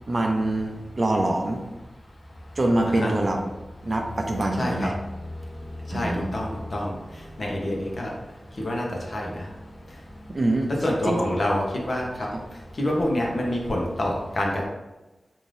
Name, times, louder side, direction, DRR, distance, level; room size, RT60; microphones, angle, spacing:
voice 1, 0.1-1.6 2.6-3.4 3.8-4.9 5.9-6.4 10.3-10.7 11.0-11.4 12.3-12.4, right 1 dB, 45° right, 2 dB, 0.5 m, -25 dB
voice 2, 4.6-4.9 5.9-6.9 7.4-8.1 8.6-9.5 10.8-12.1 12.8-14.7, left 1 dB, 60° left, -1 dB, 0.9 m, -26 dB
3.8 x 2.6 x 3.3 m, 1.1 s
wide cardioid pair, 70°, 0 cm